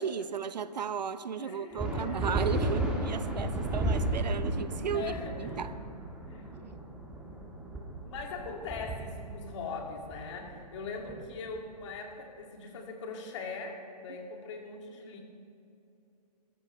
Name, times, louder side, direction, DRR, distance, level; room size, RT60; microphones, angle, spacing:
voice 1, 0.0-5.7, right 7 dB, 85° right, 13 dB, 0.8 m, -35 dB
voice 2, 1.4-2.2 2.6-3.1 4.7-5.6 6.3-6.5 8.0-15.2, left 4 dB, 45° left, 1 dB, 2.4 m, -41 dB
sound 1, 1.8-11.7, right 1 dB, 5° right, 1.4 m, -33 dB
21.0 x 13.5 x 3.3 m, 2.7 s
hypercardioid pair, 150°, 21 cm